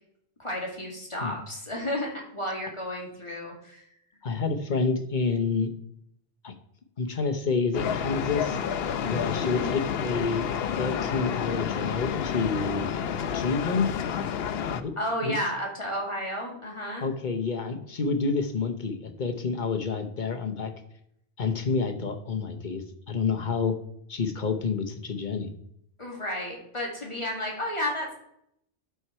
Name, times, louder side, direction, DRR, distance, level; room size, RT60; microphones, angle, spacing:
voice 1, 0.4-3.9 9.4-9.7 15.0-17.1 26.0-28.1, left 1 dB, 30° left, -2 dB, 2.4 m, -32 dB
voice 2, 4.2-5.7 6.4-6.5 7.0-8.6 9.0-10.4 10.8-12.9 13.3-13.9 14.7-14.9 15.2-15.3 17.0-20.7 21.4-23.7 24.1-25.5, left 4 dB, 50° left, 6 dB, 1.0 m, -28 dB
sound 1, 7.7-14.8, left 7 dB, 70° left, 0.9 m, -30 dB
11.5 x 4.7 x 4.3 m, 0.73 s
omnidirectional pair, 1.1 m